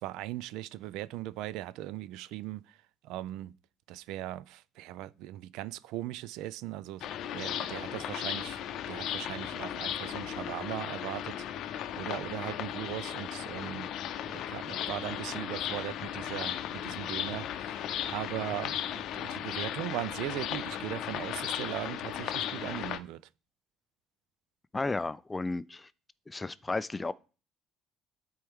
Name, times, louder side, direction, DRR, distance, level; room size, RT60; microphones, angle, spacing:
voice 1, 0.0-2.8 3.0-3.5 3.9-7.1 7.3-8.6 8.9-11.5 12.0-13.9 14.3-23.2, right 15 dB, 85° right, 0.4 m, -39 dB
sound 1, 7.0-23.0, left 10 dB, 65° left, 0.6 m, -36 dB
voice 2, 24.7-25.9 26.3-27.1, left 3 dB, 15° left, 0.3 m, -33 dB
11.5 x 4.5 x 3.6 m
cardioid pair, 120°, 0 cm